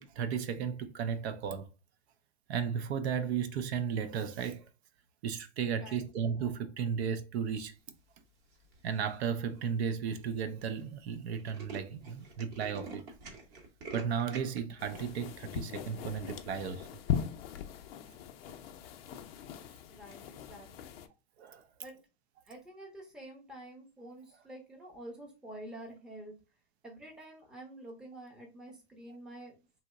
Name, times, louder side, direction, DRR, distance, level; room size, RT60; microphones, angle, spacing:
voice 1, 0.0-1.7 2.5-4.7 5.2-7.7 8.8-13.0 13.9-16.9 21.4-21.6, right 7 dB, 65° right, 0.5 m, -34 dB
Tools, 8.5-8.9 9.6-9.7 9.9-10.0 10.2-10.4 10.7-10.8 11.1-14.6, right 3 dB, 35° right, 0.8 m, -46 dB
sound 1, 14.8-21.1, left 9 dB, 60° left, 0.5 m, -39 dB
voice 2, 19.9-20.9 21.8-22.0 22.5-26.3 26.8-29.5, right 1 dB, ahead, 0.6 m, -48 dB
2.9 x 2.0 x 3.4 m
hypercardioid pair, 135°, 34 cm